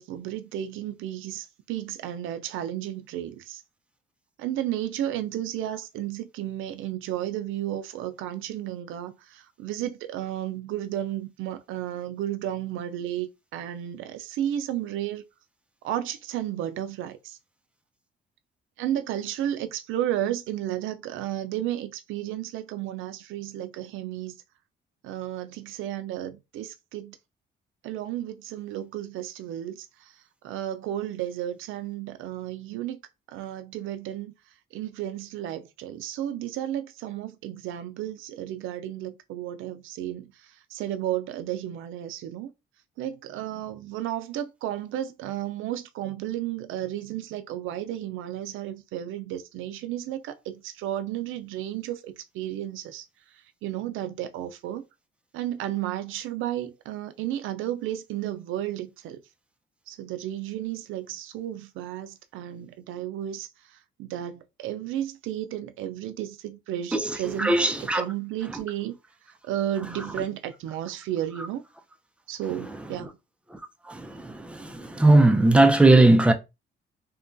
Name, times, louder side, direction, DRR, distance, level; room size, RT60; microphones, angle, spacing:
voice 1, 0.0-3.6 4.4-13.3 13.5-15.2 15.8-17.4 18.8-24.3 25.0-27.2 27.8-30.1 30.4-33.0 33.3-34.3 34.7-42.5 43.0-53.1 53.6-54.8 55.3-59.2 59.9-63.5 64.0-69.0 69.4-71.6 72.3-73.1, right 12 dB, 85° right, 0.4 m, -33 dB
voice 2, 66.9-68.0 73.9-76.3, right 2 dB, 5° right, 0.4 m, -19 dB
2.9 x 2.2 x 2.5 m
cardioid pair, 90°, 20 cm